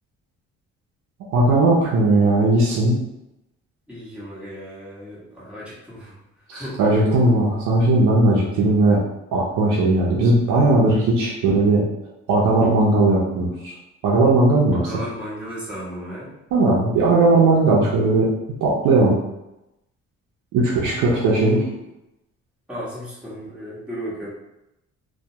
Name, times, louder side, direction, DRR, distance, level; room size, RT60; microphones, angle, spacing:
voice 1, 1.3-3.0 6.5-9.0 9.3-11.8 12.3-13.7 14.0-14.8 16.5-18.3 18.6-19.2 20.5-21.6, right 2 dB, 85° right, -4 dB, 0.6 m, -17 dB
voice 2, 3.9-6.2 6.5-6.8 8.4-8.5 14.7-16.3 20.7-21.8 22.7-24.3, equal, 5° right, -8 dB, 1.0 m, -35 dB
2.2 x 2.1 x 2.7 m, 0.90 s
cardioid pair, 90°, 30 cm